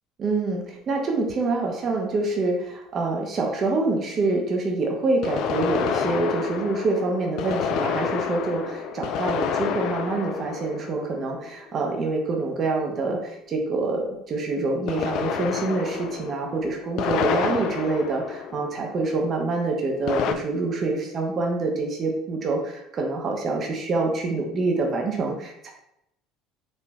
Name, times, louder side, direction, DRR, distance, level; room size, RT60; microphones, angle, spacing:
voice 1, 0.2-25.7, right 3 dB, 40° right, 1 dB, 0.7 m, -26 dB
sound 1, 1.3-1.4 5.2-11.7 14.9-19.1 20.1-20.3, left 7 dB, 55° left, 0.3 m, -29 dB
4.3 x 2.9 x 2.3 m, 0.81 s
figure-of-eight pair, 60°, 0 cm